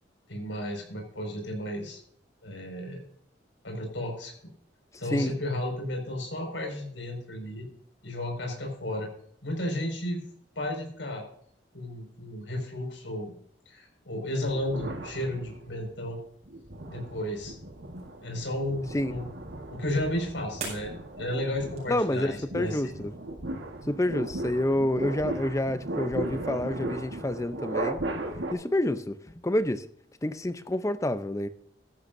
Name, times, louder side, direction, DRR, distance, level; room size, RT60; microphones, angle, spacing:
voice 1, 0.3-2.0 2.4-3.0 3.6-4.3 5.0-7.7 8.0-9.1 9.4-10.2 10.6-11.2 11.7-13.3 13.7-16.2 16.9-17.6 18.2-19.3 19.7-22.9, left 1 dB, 90° left, 5.6 m, -33 dB
sound 1, 14.5-15.9 16.4-28.5, right 1 dB, 80° right, 1.6 m, -37 dB
sound 2, 17.7-22.8, right 4 dB, 40° right, 6.4 m, -46 dB
voice 2, 21.9-23.1 23.9-28.0 28.5-29.2 29.4-29.8 30.2-31.5, left 1 dB, 15° left, 0.7 m, -28 dB
16.5 x 13.5 x 2.7 m
head